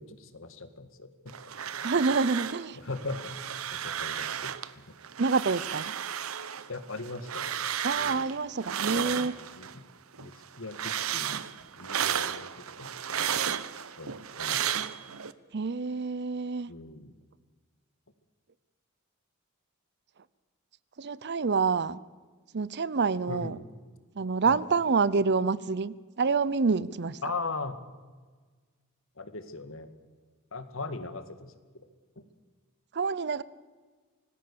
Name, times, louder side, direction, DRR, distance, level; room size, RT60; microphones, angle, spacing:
voice 1, 0.0-1.3 2.8-4.8 6.7-7.6 8.0-8.2 8.9-9.3 9.6-9.9 10.2-10.3 10.6-11.4 11.7-13.3 14.0-14.8 16.7-17.1 23.3-23.7 24.5-24.6 27.2-27.8 29.2-29.9 30.5-31.5 32.2-32.3, left 3 dB, 70° left, 10 dB, 1.9 m, -39 dB
sound 1, 1.3-2.7 2.9-4.7 5.0-9.8 10.1-15.3, right 9 dB, 85° right, 0.9 m, -33 dB
voice 2, 1.8-2.8 5.2-5.9 7.8-9.3 15.5-16.7 21.0-22.0 22.5-23.6 24.2-27.2 32.9-33.4, right 4 dB, 55° right, 19 dB, 0.7 m, -27 dB
25.5 x 19.0 x 6.9 m, 1.4 s
head